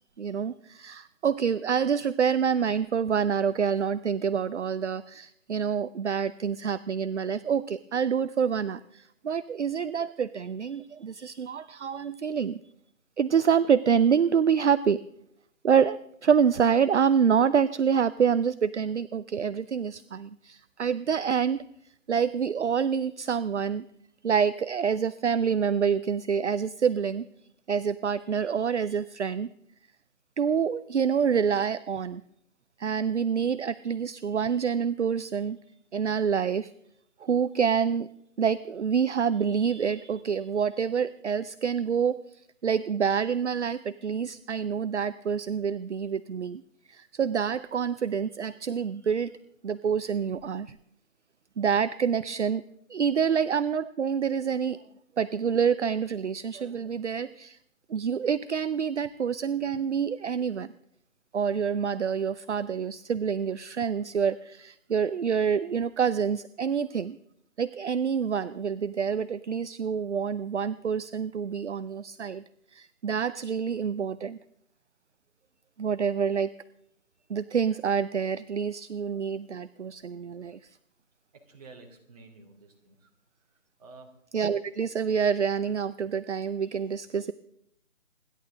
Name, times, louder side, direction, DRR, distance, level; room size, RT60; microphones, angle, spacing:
voice 1, 0.2-12.6 13.2-15.0 15.6-23.9 24.2-27.3 27.7-29.5 30.4-32.2 32.8-35.6 35.9-36.7 37.2-38.1 38.4-46.6 46.9-49.3 49.6-50.8 51.6-52.6 52.9-54.8 55.2-57.6 57.9-60.7 61.3-67.2 67.6-72.4 72.7-74.4 75.8-76.5 77.3-80.8 84.3-87.3, right 7 dB, 60° right, 15 dB, 0.6 m, -27 dB
voice 2, 81.3-83.1 83.8-84.2, right 3 dB, 30° right, 1 dB, 2.7 m, -51 dB
28.0 x 11.0 x 3.8 m, 0.73 s
figure-of-eight pair, 160°, 40 cm